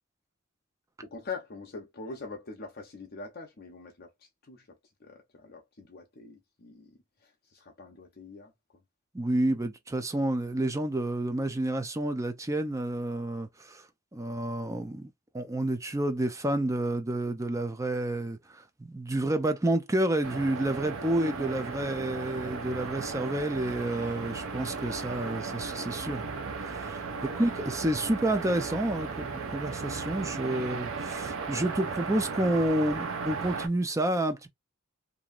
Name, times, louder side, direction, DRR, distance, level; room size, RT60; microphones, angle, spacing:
voice 1, 1.0-8.5 27.1-27.4, left 4 dB, 50° left, 0.7 m, -44 dB
voice 2, 9.1-13.8 14.1-26.3 26.6-27.0 27.4-34.5, right 1 dB, 15° right, 0.5 m, -29 dB
sound 1, 20.2-33.7, right 4 dB, 75° right, 0.7 m, -36 dB
3.0 x 2.6 x 2.4 m
head